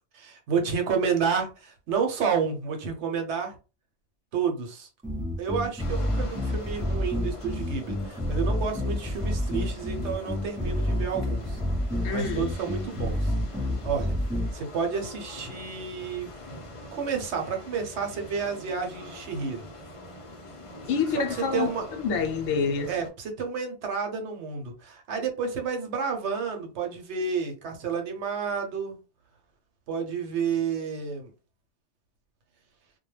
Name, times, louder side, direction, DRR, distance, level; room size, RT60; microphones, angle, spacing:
voice 1, 0.1-3.6 4.3-4.9 5.4-11.6 12.1-13.6 13.8-14.1 14.5-16.3 16.9-19.7 21.1-21.8 22.9-29.0 29.9-31.3, right 6 dB, 70° right, 1.0 m, -30 dB
sound 1, 5.0-14.5, left 1 dB, 10° right, 0.6 m, -29 dB
sound 2, 5.8-23.1, left 2 dB, 40° left, 0.5 m, -44 dB
voice 2, 12.0-12.5 20.9-22.9, left 5 dB, 80° left, 0.9 m, -27 dB
2.2 x 2.2 x 3.1 m
omnidirectional pair, 1.2 m